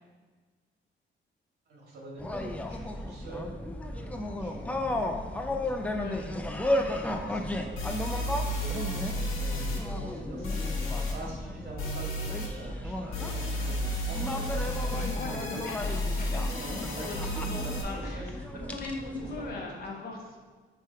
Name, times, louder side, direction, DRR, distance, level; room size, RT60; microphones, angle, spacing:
voice 1, 1.7-3.6 3.9-5.2 5.6-6.4 6.9-15.7 16.6-18.7 19.2-19.9, right 1 dB, 50° right, -3 dB, 1.9 m, -44 dB
sound 1, 2.2-19.5, left 1 dB, 5° left, 0.3 m, -34 dB
voice 2, 5.9-6.2 14.9-18.4 18.6-20.4, left 3 dB, 45° left, -1 dB, 1.0 m, -40 dB
sound 2, 7.1-7.2 7.8-9.8 10.4-11.1 11.8-12.5 13.1-17.8, left 1 dB, 85° left, 1.4 m, -32 dB
7.5 x 3.5 x 4.5 m, 1.4 s
wide cardioid pair, 175°, 21 cm